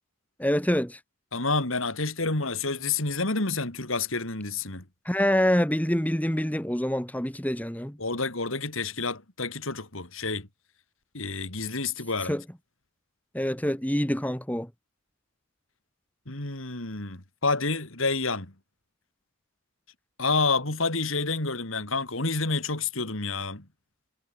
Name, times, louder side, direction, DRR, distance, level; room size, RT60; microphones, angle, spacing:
voice 1, 0.4-1.0 5.1-8.0 12.2-12.4 13.3-14.7, equal, 5° left, 1.9 m, -26 dB
voice 2, 1.3-4.8 8.0-10.5 11.1-12.3 16.3-18.5 20.2-23.6, left 3 dB, 75° left, 3.7 m, -29 dB
head